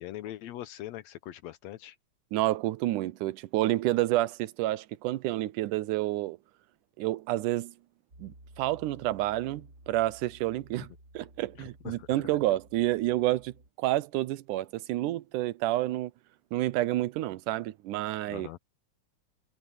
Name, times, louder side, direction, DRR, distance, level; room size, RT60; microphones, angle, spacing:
voice 1, 0.0-2.0 11.6-12.1 18.3-18.6, left 14 dB, 75° left, 1.8 m, -42 dB
voice 2, 2.3-6.4 7.0-7.7 8.2-10.9 11.2-16.1 16.5-18.5, right 16 dB, 90° right, 2.3 m, -29 dB
Piano, 8.1-13.7, right 1 dB, 30° right, 5.5 m, -55 dB
omnidirectional pair, 3.5 m